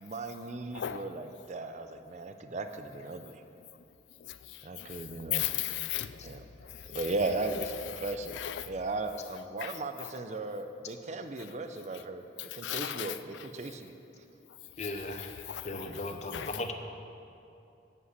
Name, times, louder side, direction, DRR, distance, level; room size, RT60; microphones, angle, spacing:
voice 1, 0.0-3.4 4.6-5.6 6.2-6.4 6.9-8.4 8.6-12.2 12.5-13.9, right 2 dB, 40° right, 0.5 m, -37 dB
voice 2, 5.3-7.0 8.3-8.7 9.6-9.7 10.0-10.1 12.4-13.2 14.8-14.9 15.2-16.6, left 12 dB, 75° left, 0.4 m, -36 dB
voice 3, 14.8-15.3 15.6-16.7, left 2 dB, 40° left, 0.7 m, -37 dB
11.0 x 5.4 x 8.1 m
head